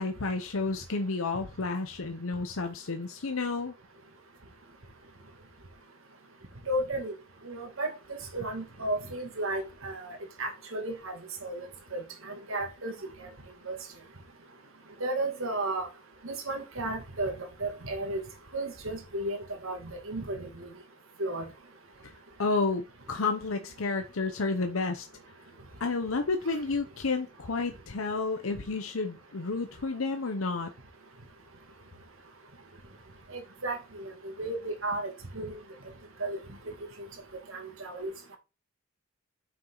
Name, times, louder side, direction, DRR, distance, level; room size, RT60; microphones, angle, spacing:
voice 1, 0.0-3.7 22.4-25.1 25.8-30.7, left 3 dB, 90° left, 0.9 m, -31 dB
voice 2, 6.7-7.1 7.4-11.7 11.9-12.9 13.7-13.8 15.0-15.9 16.2-17.3 17.6-18.2 18.5-20.7 21.2-21.5 33.3-35.6 36.2-36.4 37.5-38.4, right 2 dB, 80° right, 2.3 m, -34 dB
7.5 x 6.0 x 3.9 m
head